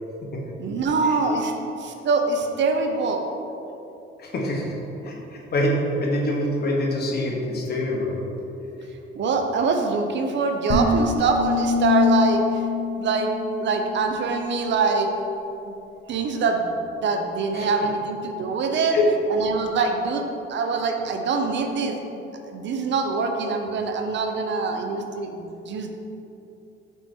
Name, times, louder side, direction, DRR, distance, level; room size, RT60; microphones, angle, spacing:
voice 1, 0.6-1.5 1.8-3.2 9.1-12.4 13.0-13.3 13.6-15.1 15.7-15.8 16.1-19.0 19.3-20.2 20.5-22.0 22.5-25.9, right 4 dB, 65° right, 4 dB, 0.7 m, -24 dB
voice 2, 4.2-8.2 17.5-17.7 18.9-19.1, left 1 dB, 55° left, -1 dB, 1.2 m, -25 dB
sound 1, 10.7-14.0, left 5 dB, 85° left, 1.1 m, -23 dB
5.6 x 4.5 x 4.4 m, 2.9 s
cardioid pair, 90°, 20 cm